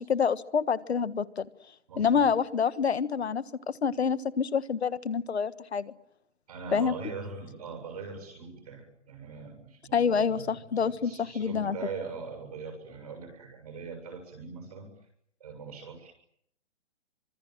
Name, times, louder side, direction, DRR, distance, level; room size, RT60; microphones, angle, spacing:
voice 1, 0.0-1.5 2.0-5.9 6.7-6.9 9.9-11.8, left 6 dB, 65° left, 15 dB, 1.6 m, -27 dB
voice 2, 1.9-2.3 6.5-14.9 15.4-16.1, right 5 dB, 35° right, 4 dB, 7.2 m, -41 dB
27.5 x 26.0 x 7.6 m, 0.74 s
hypercardioid pair, 180°, 35 cm